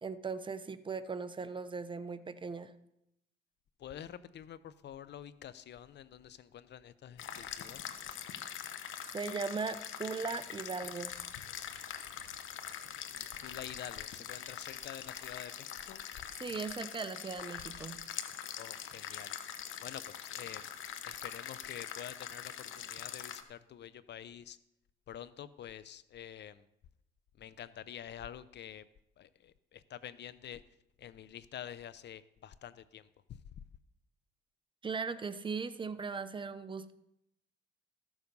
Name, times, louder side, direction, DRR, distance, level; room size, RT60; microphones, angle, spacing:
voice 1, 0.0-2.7 9.1-11.1 16.4-18.0 34.8-36.9, right 4 dB, 25° right, 11 dB, 0.8 m, -38 dB
voice 2, 3.8-7.9 13.1-16.0 18.6-19.3 19.8-20.7 21.0-24.6 25.1-26.7 27.4-28.9 29.2-30.6 31.0-33.4, left 10 dB, 60° left, 16 dB, 0.7 m, -48 dB
sound 1, 7.2-23.4, left 9 dB, 75° left, 1.0 m, -43 dB
13.5 x 7.2 x 5.3 m, 0.82 s
cardioid pair, 90°, 20 cm